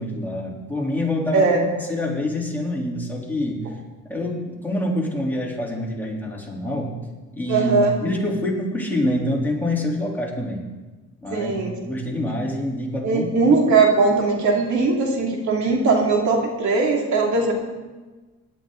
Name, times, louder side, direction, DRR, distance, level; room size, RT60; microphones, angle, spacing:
voice 1, 0.0-3.7 4.1-6.9 7.3-10.6 11.2-13.3, left 1 dB, 5° left, -3 dB, 3.4 m, -26 dB
voice 2, 7.5-8.0 11.3-11.7 13.0-17.5, right 4 dB, 70° right, 0 dB, 2.7 m, -19 dB
17.0 x 11.5 x 3.9 m, 1.2 s
cardioid pair, 90°, 30 cm